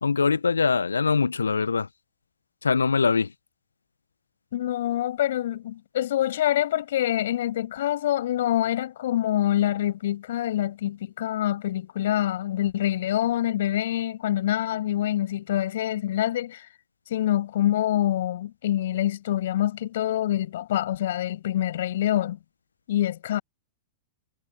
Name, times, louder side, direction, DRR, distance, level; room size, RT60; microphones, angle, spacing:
voice 1, 0.0-1.9 2.6-3.3, left 5 dB, 80° left, 1.7 m, -22 dB
voice 2, 4.5-16.7 17.1-22.4 22.9-23.4, left 12 dB, 60° left, 7.2 m, -26 dB
figure-of-eight pair, 95°, 0 cm